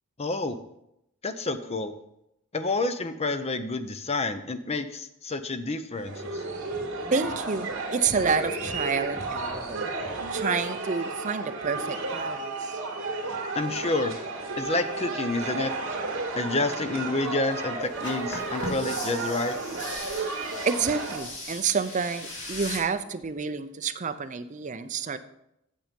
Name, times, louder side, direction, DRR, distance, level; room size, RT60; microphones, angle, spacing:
voice 1, 0.2-0.6 1.2-1.9 2.5-6.4 13.5-14.3 14.6-15.7 16.4-19.6, left 3 dB, 30° left, 9 dB, 0.6 m, -29 dB
sound 1, 5.9-21.2, right 3 dB, 60° right, 2.4 m, -33 dB
voice 2, 7.1-9.9 10.3-12.8 20.7-25.2, right 5 dB, 35° right, 11 dB, 0.5 m, -29 dB
sound 2, 17.9-22.8, left 1 dB, 60° left, 2.8 m, -38 dB
8.9 x 7.1 x 5.2 m, 0.81 s
head